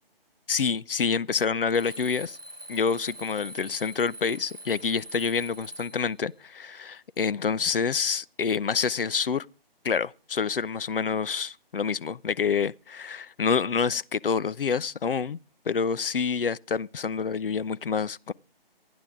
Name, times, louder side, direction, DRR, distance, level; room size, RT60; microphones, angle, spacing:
voice 1, 0.5-2.4 2.7-9.5 9.8-15.4 15.7-18.3, left 6 dB, 65° left, 0.6 m, -27 dB
Alarm, 1.7-6.1, right 1 dB, 65° right, 1.8 m, -43 dB
27.0 x 9.7 x 3.6 m
figure-of-eight pair, 150°, 30 cm